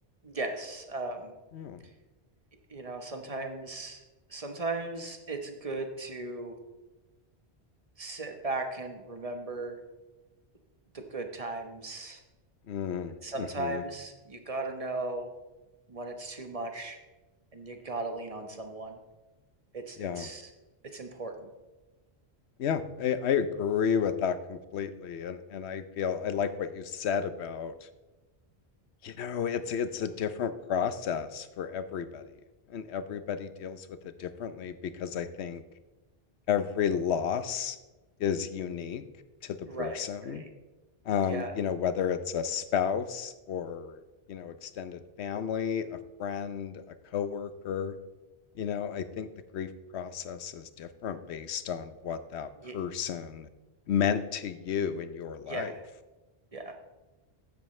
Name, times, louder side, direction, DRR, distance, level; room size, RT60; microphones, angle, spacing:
voice 1, 0.2-1.3 2.7-4.0 4.3-6.6 8.0-9.8 10.9-12.2 13.2-15.3 15.9-17.0 17.5-19.0 19.7-20.5 20.9-21.5 39.7-40.5 41.2-41.5 52.6-52.8 55.4-55.8 56.5-56.7, right 2 dB, 35° right, 5 dB, 1.2 m, -37 dB
voice 2, 12.7-13.8 20.0-20.3 22.6-27.9 29.0-32.3 32.7-35.6 36.5-37.8 38.2-39.0 39.4-40.4 41.1-44.0 44.3-46.8 47.1-48.0 48.6-53.5 53.9-55.7, left 7 dB, 90° left, 12 dB, 1.0 m, -32 dB
14.5 x 10.5 x 3.2 m, 1.1 s
omnidirectional pair, 1.1 m